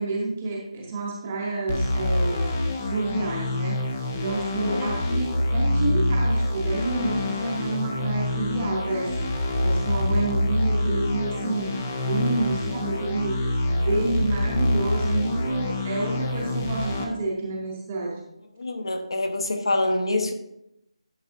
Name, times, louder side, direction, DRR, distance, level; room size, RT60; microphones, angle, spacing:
voice 1, 0.0-3.8 4.1-9.1 9.6-11.7 12.1-18.2, right 2 dB, 15° right, -2 dB, 0.7 m, -29 dB
sound 1, 1.7-17.1, left 1 dB, 10° left, 0.3 m, -26 dB
voice 2, 18.6-20.3, left 2 dB, 55° left, 6 dB, 0.8 m, -26 dB
10.5 x 5.4 x 2.5 m, 0.84 s
figure-of-eight pair, 180°, 3 cm